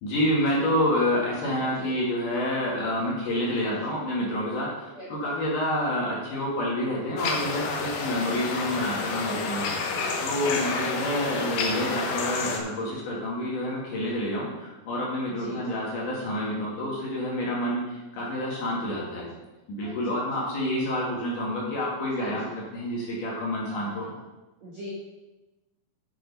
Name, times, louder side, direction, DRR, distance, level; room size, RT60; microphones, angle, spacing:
voice 1, 0.0-19.3 19.7-22.4 22.7-24.1, left 1 dB, 55° left, -5 dB, 3.0 m, -28 dB
voice 2, 4.9-5.4 9.8-10.8 15.3-15.8 19.1-19.3 19.8-20.2 22.2-22.5 23.7-24.2 24.6-24.9, equal, 60° right, -6 dB, 1.8 m, -42 dB
sound 1, 7.2-12.6, left 4 dB, 70° left, 2.4 m, -30 dB
9.5 x 5.9 x 5.4 m, 1.1 s
omnidirectional pair, 5.1 m